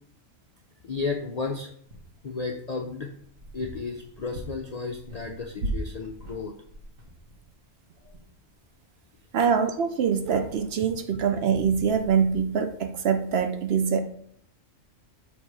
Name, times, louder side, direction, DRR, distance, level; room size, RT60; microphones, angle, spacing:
voice 1, 0.8-1.7 2.2-3.1 3.5-6.5, left 4 dB, 55° left, 3 dB, 0.4 m, -33 dB
sound 1, 1.9-2.3 3.1-7.6 8.0-8.2 8.5-8.6 9.1-9.2 9.4-9.5 9.8-10.9 11.5-12.4, right 1 dB, 85° right, 1.5 m, -39 dB
voice 2, 9.3-14.0, right 7 dB, 60° right, 7 dB, 0.7 m, -24 dB
6.6 x 3.1 x 4.7 m, 0.64 s
omnidirectional pair, 1.3 m